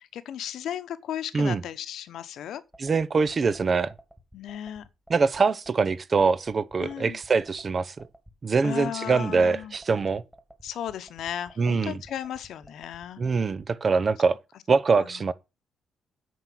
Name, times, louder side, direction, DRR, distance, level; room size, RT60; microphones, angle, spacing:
voice 1, 0.0-2.6 4.3-4.9 6.8-7.2 8.6-9.7 10.6-13.2 15.0-15.3, left 10 dB, 75° left, 1.1 m, -35 dB
sound 1, 2.7-13.7, equal, 10° right, 2.6 m, -52 dB
voice 2, 2.8-3.9 5.1-7.9 8.4-10.2 11.6-12.0 13.2-14.4 14.7-15.3, right 4 dB, 40° right, 0.8 m, -23 dB
9.5 x 4.7 x 7.6 m
cardioid pair, 90°, 0 cm